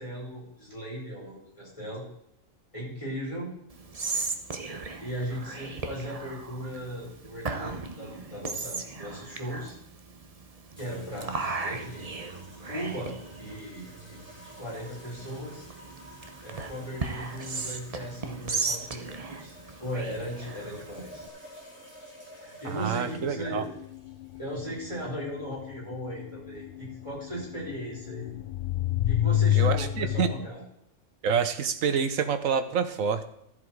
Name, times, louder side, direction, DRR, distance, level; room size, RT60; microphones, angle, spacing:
voice 1, 0.0-2.0 2.7-3.5 5.0-9.8 10.8-12.1 12.7-14.2 14.6-15.7 16.1-21.3 22.4-23.7 24.4-28.3 29.1-30.6, equal, 25° left, -6 dB, 5.6 m, -37 dB
Whispering, 3.7-21.3, right 4 dB, 30° right, 0.9 m, -37 dB
sound 1, 10.8-25.0, equal, 10° right, 3.7 m, -51 dB
voice 2, 22.6-23.6 29.6-30.3 31.2-33.2, right 6 dB, 90° right, 10 dB, 1.3 m, -27 dB
sound 2, 23.2-30.4, left 12 dB, 75° left, 0.4 m, -28 dB
13.0 x 7.6 x 4.7 m, 0.78 s
omnidirectional pair, 1.3 m